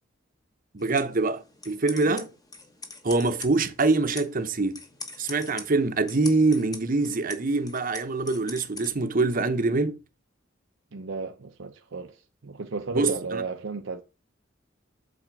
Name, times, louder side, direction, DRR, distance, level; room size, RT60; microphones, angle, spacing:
voice 1, 0.7-2.3 3.0-4.8 5.2-10.0 12.9-13.4, right 3 dB, 45° right, 0.9 m, -24 dB
sound 1, 0.8-8.9, left 3 dB, 20° left, 1.2 m, -43 dB
voice 2, 10.9-14.0, right 4 dB, 75° right, 0.7 m, -34 dB
7.5 x 4.4 x 5.2 m
head